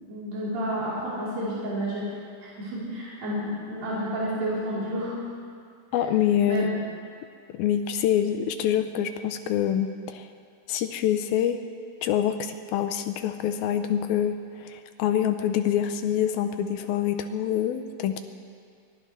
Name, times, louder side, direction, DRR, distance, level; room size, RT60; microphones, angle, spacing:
voice 1, 0.1-5.2 6.5-6.7, equal, 60° right, -9 dB, 5.4 m, -30 dB
voice 2, 5.9-6.7 7.5-10.3 10.7-11.6 12.0-18.2, left 10 dB, 80° left, 8 dB, 2.2 m, -26 dB
23.5 x 18.0 x 3.3 m, 2.2 s
omnidirectional pair, 4.8 m